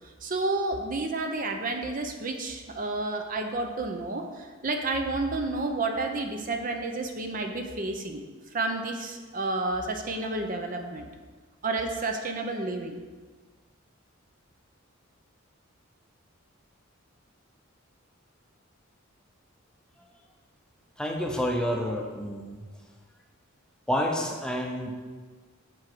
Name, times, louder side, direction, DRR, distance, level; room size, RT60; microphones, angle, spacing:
voice 1, 0.2-8.2 8.5-11.1 11.6-12.9, right 2 dB, 40° right, 4 dB, 0.7 m, -30 dB
voice 2, 21.0-22.7 23.9-24.9, equal, 5° left, 1 dB, 0.7 m, -29 dB
7.8 x 4.9 x 6.0 m, 1.4 s
head